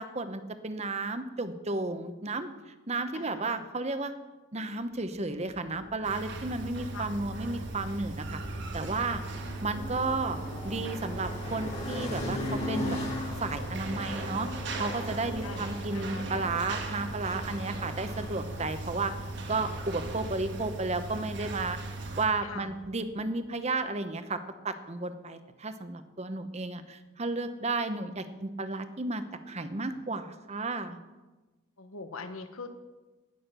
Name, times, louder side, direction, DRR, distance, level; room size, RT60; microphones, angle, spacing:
voice 1, 0.0-2.5 2.9-4.1 4.5-8.4 8.7-9.2 9.6-10.4 10.6-13.0 13.4-19.1 19.5-21.8 22.1-24.4 24.6-31.0, right 3 dB, 30° right, 10 dB, 0.8 m, -33 dB
voice 2, 3.1-3.7 6.9-7.2 15.4-16.4 22.4-22.7 31.8-32.7, left 4 dB, 85° left, 9 dB, 1.1 m, -43 dB
sound 1, 5.5-23.0, left 1 dB, 30° left, 2.5 m, -40 dB
sound 2, 6.0-22.3, right 2 dB, 55° right, 1.7 m, -38 dB
18.0 x 6.5 x 6.7 m, 1.2 s
head